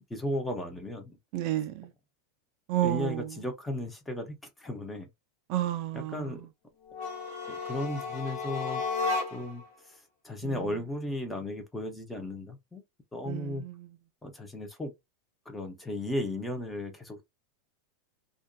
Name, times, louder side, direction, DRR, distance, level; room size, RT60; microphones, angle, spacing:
voice 1, 0.1-1.2 2.8-5.1 5.9-6.4 7.5-8.8 9.3-9.6 9.9-12.8 13.1-13.6 14.2-14.9 15.5-17.2, left 1 dB, 5° left, 0.6 m, -35 dB
voice 2, 1.3-1.9 2.7-3.3 5.5-6.4 10.4-10.7 13.2-13.9, right 13 dB, 45° right, 0.3 m, -31 dB
sound 1, 6.9-9.6, left 4 dB, 50° left, 0.9 m, -33 dB
2.5 x 2.2 x 2.2 m
supercardioid pair, 160°, 0 cm